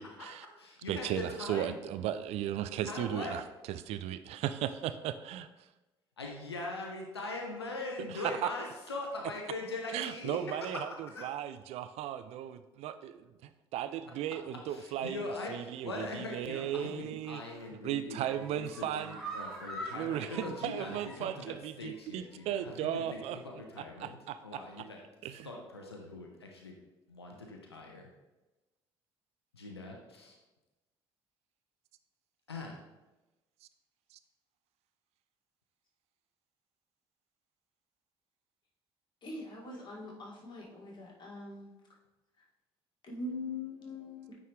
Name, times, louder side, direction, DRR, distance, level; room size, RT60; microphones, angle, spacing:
voice 1, 0.0-0.5 0.9-3.4 3.7-5.5 8.1-8.5 9.9-17.4 17.8-19.2 19.9-23.4 23.8-24.6 25.2-25.5, right 11 dB, 55° right, 12 dB, 0.4 m, -36 dB
voice 2, 0.6-1.8 2.8-3.4 6.2-11.3 14.7-25.0 25.4-26.7 27.1-28.0 29.5-30.4 32.5-32.8, left 2 dB, 85° left, 1 dB, 0.7 m, -41 dB
sound 1, 17.3-17.7 18.1-21.5 21.8-21.9 22.3-22.4, right 1 dB, ahead, 2.0 m, -44 dB
voice 3, 39.2-41.7 43.0-44.3, left 2 dB, 35° left, -3 dB, 2.1 m, -42 dB
9.2 x 3.8 x 3.2 m, 1.1 s
figure-of-eight pair, 50°, 13 cm